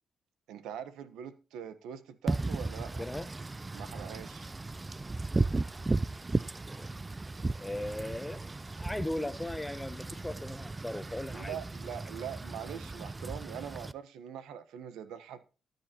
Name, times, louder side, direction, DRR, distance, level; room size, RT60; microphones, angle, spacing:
voice 1, 0.5-3.1 3.7-4.5 11.3-15.4, right 9 dB, 85° right, 1.1 m, -43 dB
Wind / Rain, 2.3-13.9, right 3 dB, 20° right, 0.4 m, -35 dB
voice 2, 7.6-11.6, left 1 dB, 10° left, 0.8 m, -38 dB
13.5 x 9.5 x 2.9 m
cardioid pair, 90°, 0 cm